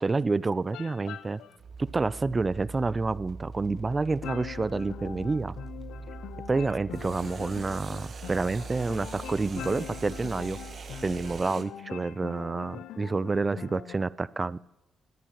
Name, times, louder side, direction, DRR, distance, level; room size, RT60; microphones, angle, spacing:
voice 1, 0.0-1.4 1.8-5.5 6.5-10.6 11.0-14.6, right 3 dB, 30° right, 19 dB, 0.4 m, -29 dB
sound 1, 0.6-5.8 6.9-11.7, right 5 dB, 50° right, 1.1 m, -47 dB
sound 2, 0.7-1.6 4.2-14.0, left 11 dB, 80° left, 0.5 m, -43 dB
sound 3, 1.6-11.4, right 4 dB, 65° right, 3.3 m, -43 dB
20.0 x 9.5 x 3.0 m, 0.91 s
cardioid pair, 75°, 0 cm